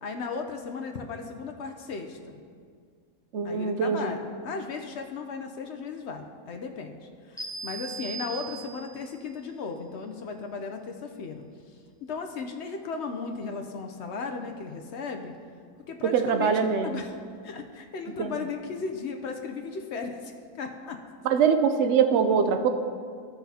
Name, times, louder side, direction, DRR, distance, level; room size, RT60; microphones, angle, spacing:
voice 1, 0.0-2.4 3.4-11.4 12.0-15.3 15.9-17.2 17.4-21.0, left 4 dB, 60° left, 4 dB, 0.7 m, -36 dB
voice 2, 3.3-4.1 16.1-17.0 18.2-18.3 21.3-22.7, right 6 dB, 60° right, 7 dB, 0.7 m, -23 dB
sound 1, 7.4-9.1, right 4 dB, ahead, 1.3 m, -38 dB
15.0 x 6.0 x 2.8 m, 2.1 s
omnidirectional pair, 1.6 m